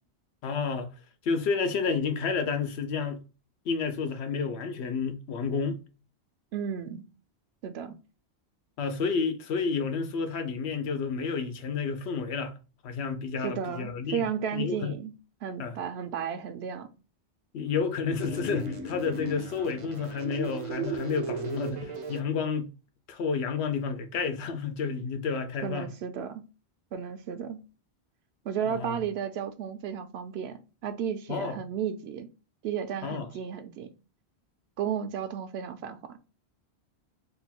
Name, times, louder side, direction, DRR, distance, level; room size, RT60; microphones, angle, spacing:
voice 1, 0.4-0.9 1.2-3.2 3.7-5.8 8.8-12.6 12.8-14.2 14.5-14.9 15.6-15.8 17.5-22.7 23.1-25.9 28.7-28.9 31.3-31.6 33.0-33.3, left 5 dB, 75° left, 0.9 m, -30 dB
voice 2, 6.5-7.0 7.6-8.0 13.4-15.1 15.4-16.9 25.6-26.4 26.9-27.6 28.4-32.3 32.6-33.9 34.8-36.2, right 8 dB, 75° right, 0.8 m, -33 dB
sound 1, 18.2-22.2, right 2 dB, 40° right, 0.5 m, -36 dB
3.8 x 2.2 x 4.2 m
omnidirectional pair, 1.1 m